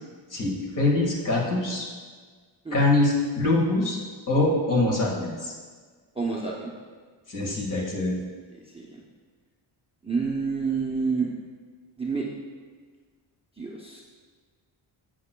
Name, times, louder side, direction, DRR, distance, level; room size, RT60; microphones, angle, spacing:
voice 1, 0.3-1.9 2.7-4.0 4.3-5.5 7.3-8.2, left 2 dB, 40° left, -3 dB, 1.8 m, -24 dB
voice 2, 6.2-6.7 8.7-9.0 10.0-11.3 12.0-12.3 13.6-14.0, right 4 dB, 10° right, -4 dB, 0.7 m, -28 dB
11.0 x 7.9 x 2.2 m, 1.5 s
wide cardioid pair, 155°, 48 cm